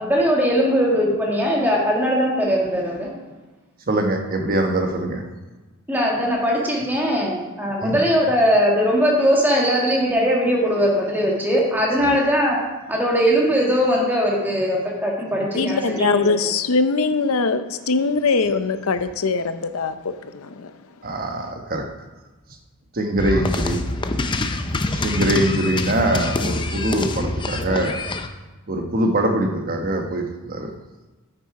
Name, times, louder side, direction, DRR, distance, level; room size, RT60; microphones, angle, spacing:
voice 1, 0.0-3.1 5.9-12.6 12.9-16.3, equal, 10° right, -3 dB, 1.8 m, -20 dB
voice 2, 3.9-5.2 7.8-8.0 12.0-12.2 21.0-21.8 22.9-23.8 24.9-28.0 28.7-30.7, right 1 dB, 40° right, 4 dB, 1.1 m, -23 dB
voice 3, 15.5-20.7, left 4 dB, 70° left, 11 dB, 0.6 m, -22 dB
sound 1, 23.2-28.3, left 2 dB, 20° left, 0.5 m, -25 dB
9.5 x 6.9 x 4.8 m, 1.2 s
head